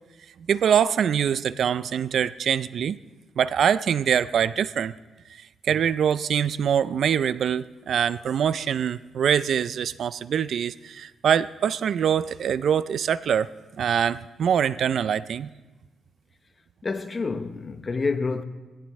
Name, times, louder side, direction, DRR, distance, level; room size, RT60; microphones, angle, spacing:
voice 1, 0.5-3.0 3.4-4.9 5.6-15.5, right 8 dB, 65° right, 0.4 m, -24 dB
voice 2, 16.8-18.4, left 4 dB, 30° left, 0.9 m, -28 dB
19.5 x 17.0 x 3.2 m
cardioid pair, 125°, 0 cm